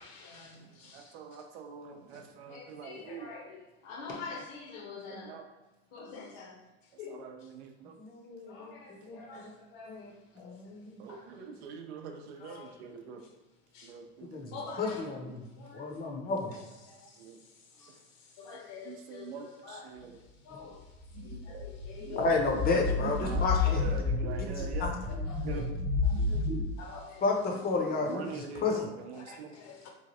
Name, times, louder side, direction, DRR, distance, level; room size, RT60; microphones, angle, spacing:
voice 1, 0.0-1.1 2.5-5.4 5.9-6.6 7.0-7.2 8.4-10.6 11.1-11.5 12.4-12.9 13.7-13.9 14.5-15.2 15.6-17.2 17.7-18.0 18.3-20.0 20.4-20.9 21.2-23.8 25.3-25.7 26.0-26.5 26.8-27.2 28.3-28.4 29.1-29.9, left 5 dB, 60° left, 1 dB, 0.8 m, -47 dB
voice 2, 0.9-3.3 5.1-5.4 7.1-7.9 11.0-13.2 13.8-14.4 14.6-14.8 17.2-17.4 18.9-20.1 22.1-22.2 23.2-24.9 25.4-25.7 26.2-26.4 27.8-29.5, right 6 dB, 80° right, 4 dB, 0.6 m, -44 dB
voice 3, 8.0-8.7 9.1-9.2 9.9-10.1 10.4-11.0 14.3-15.4 15.7-16.5 22.2-23.8 24.6-24.9 27.2-28.9, left 3 dB, 30° left, 2 dB, 0.6 m, -31 dB
sound 1, 20.9-26.6, left 3 dB, 15° right, 0.5 m, -31 dB
3.1 x 2.3 x 2.6 m, 1.1 s
hypercardioid pair, 105°, 32 cm